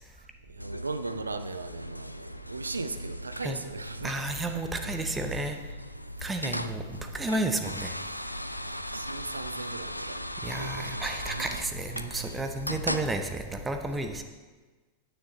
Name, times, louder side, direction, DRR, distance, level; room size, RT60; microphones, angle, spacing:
voice 1, 0.5-4.4 4.8-4.9 8.6-10.2 10.5-11.5 12.1-12.5, right 3 dB, 80° right, 10 dB, 0.5 m, -38 dB
sound 1, 0.6-13.1, left 1 dB, 90° left, 0.3 m, -38 dB
voice 2, 4.0-5.6 6.2-8.0 10.4-14.2, right 2 dB, 10° right, 5 dB, 0.7 m, -32 dB
9.6 x 8.8 x 3.1 m, 1.3 s
figure-of-eight pair, 90°, 0 cm